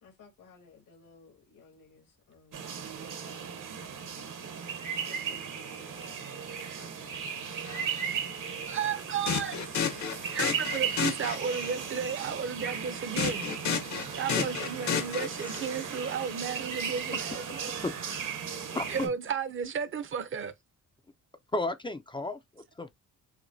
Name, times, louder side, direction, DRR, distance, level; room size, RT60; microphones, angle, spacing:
voice 1, 0.0-2.7 3.0-4.2 5.0-7.4 8.0-8.3 18.5-18.9 19.2-19.3, left 4 dB, 80° left, 2.0 m, -56 dB
sound 1, 2.5-19.1, right 7 dB, 70° right, 1.1 m, -36 dB
sound 2, 7.7-7.8 9.3-11.7 13.2-15.8, left 6 dB, 60° left, 0.9 m, -32 dB
voice 2, 8.7-9.6 9.8-10.0 10.3-13.5 14.2-17.7 18.9-20.5, right 7 dB, 40° right, 0.6 m, -33 dB
voice 3, 17.8-18.2 18.7-19.1 21.5-22.9, left 2 dB, 15° left, 0.4 m, -34 dB
5.9 x 2.2 x 2.6 m
cardioid pair, 105°, 33 cm